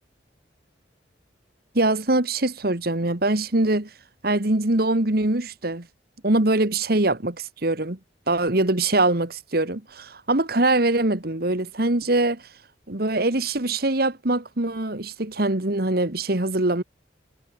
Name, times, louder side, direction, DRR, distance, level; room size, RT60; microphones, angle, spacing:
voice 1, 1.8-3.9 4.2-5.9 6.2-8.0 8.3-12.4 12.9-16.8, right 2 dB, 55° right, 1.9 m, -23 dB
head